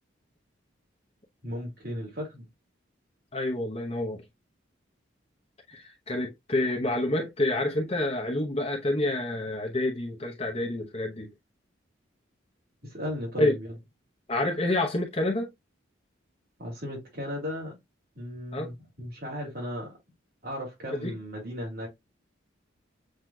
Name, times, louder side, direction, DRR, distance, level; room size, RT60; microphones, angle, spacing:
voice 1, 1.4-2.5 12.9-13.7 16.6-17.7 18.2-19.9 20.4-21.9, left 1 dB, 50° right, 2.6 m, -36 dB
voice 2, 3.3-4.2 5.7-11.3 13.4-13.6 14.3-15.5 18.5-18.7 20.9-21.2, left 1 dB, 30° left, 0.8 m, -28 dB
7.7 x 2.8 x 2.3 m
head